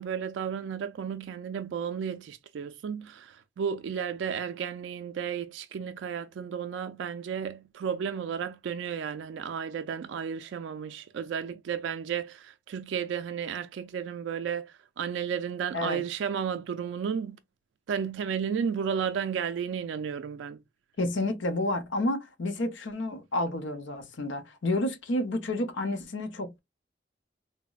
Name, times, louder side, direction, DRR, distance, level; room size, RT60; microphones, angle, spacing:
voice 1, 0.0-17.4 17.9-20.6, right 7 dB, 85° right, 0.3 m, -33 dB
voice 2, 21.0-26.6, left 1 dB, 90° left, 0.6 m, -30 dB
3.9 x 2.0 x 2.2 m
head